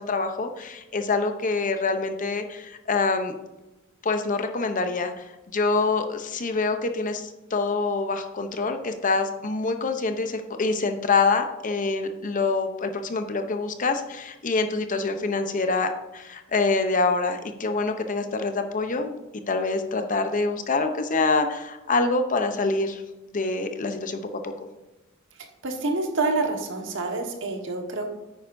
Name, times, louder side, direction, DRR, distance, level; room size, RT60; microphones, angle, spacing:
voice 1, 0.0-3.3 4.0-19.1 19.5-23.0 23.3-24.5, left 3 dB, 40° left, 7 dB, 0.7 m, -26 dB
voice 2, 25.6-28.1, right 3 dB, 65° right, 3 dB, 1.4 m, -27 dB
9.6 x 9.1 x 2.6 m, 1.0 s
head